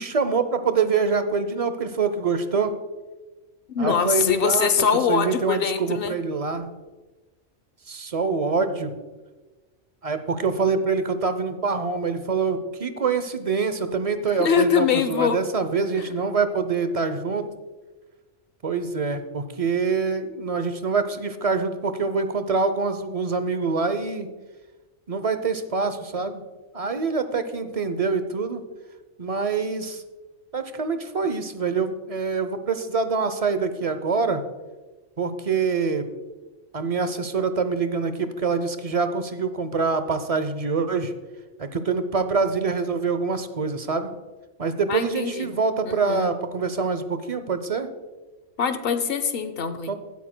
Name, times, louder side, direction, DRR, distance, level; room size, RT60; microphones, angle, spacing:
voice 1, 0.0-2.8 3.8-4.7 5.1-6.7 7.9-9.0 10.0-17.5 18.6-24.3 25.1-26.4 26.7-28.6 29.2-30.0 30.5-34.4 35.2-36.1 36.7-41.1 41.6-44.1 44.6-47.9 49.9-50.0, right 4 dB, 40° right, 10 dB, 0.5 m, -25 dB
voice 2, 3.7-6.1 14.4-15.4 16.0-16.1 44.9-45.5 45.9-46.3 48.6-49.9, left 7 dB, 55° left, 11 dB, 0.9 m, -23 dB
16.5 x 9.1 x 2.2 m, 1.2 s
omnidirectional pair, 1.3 m